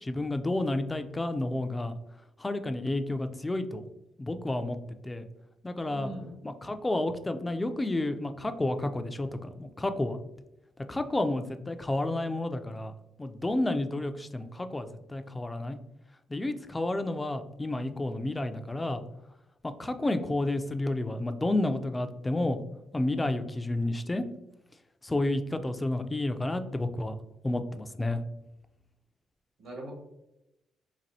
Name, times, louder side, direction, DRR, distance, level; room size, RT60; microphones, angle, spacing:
voice 1, 0.0-1.9 2.4-3.9 4.2-4.8 5.0-5.2 5.6-6.1 6.4-10.2 10.9-12.9 13.2-15.8 16.3-19.0 19.6-22.6 22.9-24.2 25.0-27.1 27.4-28.2, left 2 dB, 15° left, 8 dB, 0.3 m, -30 dB
voice 2, 5.9-6.3 29.6-29.9, right 1 dB, 70° right, -1 dB, 1.4 m, -41 dB
4.0 x 2.6 x 2.7 m, 0.90 s
cardioid pair, 90°, 0 cm